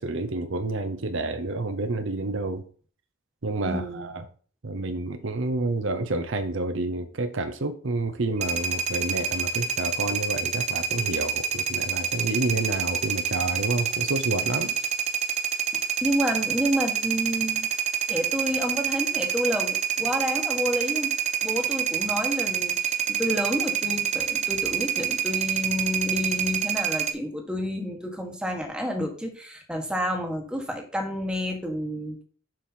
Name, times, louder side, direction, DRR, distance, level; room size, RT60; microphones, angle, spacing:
voice 1, 0.0-2.6 3.4-4.2 4.6-14.7, right 2 dB, 65° right, 0.8 m, -29 dB
voice 2, 3.6-4.2 16.0-17.7 18.1-21.1 21.4-32.2, equal, 5° right, 1.3 m, -29 dB
sound 1, 8.4-27.1, right 8 dB, 35° right, 0.9 m, -27 dB
7.7 x 5.5 x 4.4 m
head